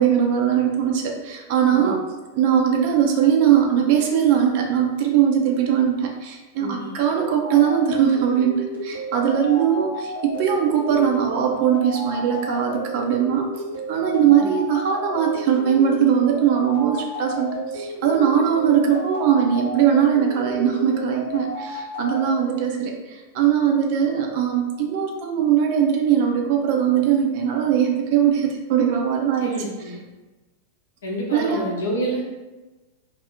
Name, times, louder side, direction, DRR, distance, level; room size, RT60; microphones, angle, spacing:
voice 1, 0.0-2.0 2.4-13.5 13.9-29.5 31.3-31.6, right 8 dB, 50° right, 1 dB, 0.4 m, -20 dB
voice 2, 6.6-6.9 14.2-14.5 29.4-30.0 31.0-32.2, right 1 dB, 65° left, -2 dB, 0.7 m, -28 dB
sound 1, 7.4-22.4, left 1 dB, 80° right, 0.9 m, -32 dB
2.5 x 2.0 x 3.5 m, 1.2 s
figure-of-eight pair, 90°, 0 cm